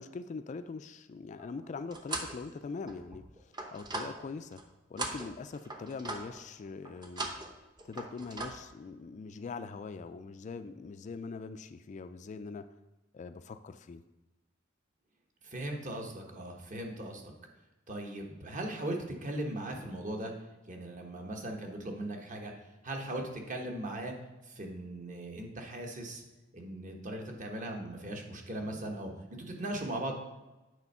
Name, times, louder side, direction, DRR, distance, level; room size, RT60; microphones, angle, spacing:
voice 1, 0.0-4.6 4.9-7.3 7.8-12.6 13.1-14.0, left 4 dB, 35° left, 10 dB, 0.3 m, -42 dB
sound 1, 1.4-2.4 2.8-4.6 5.0-6.4 6.9-7.5 7.8-8.5, right 2 dB, 20° right, 0.7 m, -39 dB
voice 2, 15.4-17.2 17.9-20.3 20.7-22.5 22.8-24.1 24.5-26.2 26.5-30.1, right 1 dB, 40° right, 2 dB, 1.1 m, -38 dB
8.4 x 4.3 x 5.4 m, 1.1 s
head